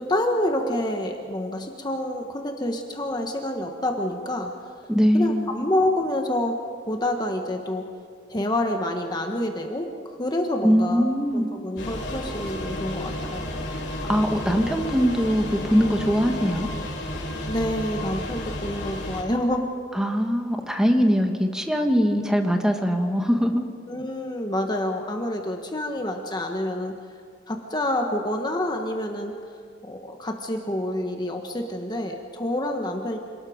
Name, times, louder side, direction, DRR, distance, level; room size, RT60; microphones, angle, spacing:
voice 1, 0.0-4.5 5.1-6.6 6.9-7.8 8.3-9.9 10.2-11.0 11.3-13.5 17.5-19.7 23.9-26.9 27.5-29.3 29.8-33.2, left 1 dB, 25° left, 3 dB, 1.3 m, -27 dB
voice 2, 4.9-5.5 10.6-11.5 14.1-16.7 19.9-23.6, equal, 5° right, 3 dB, 1.6 m, -22 dB
sound 1, 11.8-19.2, left 1 dB, 70° left, 3.6 m, -32 dB
28.0 x 19.5 x 5.1 m, 2.1 s
head